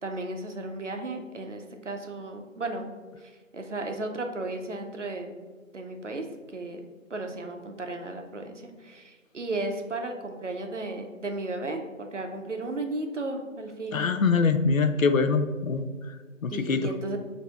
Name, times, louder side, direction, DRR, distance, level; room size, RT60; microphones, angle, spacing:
voice 1, 0.0-3.0 3.2-5.3 5.7-6.3 6.5-6.8 7.1-14.1 16.5-17.2, right 2 dB, 65° right, 4 dB, 0.6 m, -34 dB
voice 2, 13.9-15.9 16.4-16.8, left 4 dB, 85° left, 9 dB, 0.5 m, -23 dB
7.5 x 2.7 x 2.4 m, 1.4 s
figure-of-eight pair, 170°, 40 cm